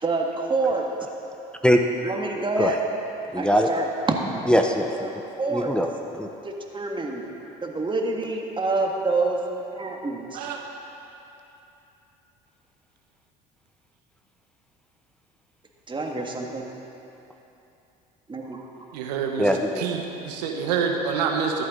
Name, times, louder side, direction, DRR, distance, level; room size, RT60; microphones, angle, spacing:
voice 1, 0.0-0.9 2.0-2.8 3.4-4.2 4.9-5.7 6.4-7.3 7.6-9.4 9.7-10.5 15.9-16.7 18.3-18.6, right 3 dB, 25° right, 1 dB, 1.8 m, -27 dB
voice 2, 3.3-3.7 4.5-5.2 5.5-6.3 19.4-19.8, equal, 5° left, 3 dB, 0.9 m, -22 dB
voice 3, 18.9-19.5 19.8-21.6, right 6 dB, 85° right, 2 dB, 1.0 m, -27 dB
14.0 x 11.5 x 3.9 m, 2.9 s
hypercardioid pair, 65°, 20 cm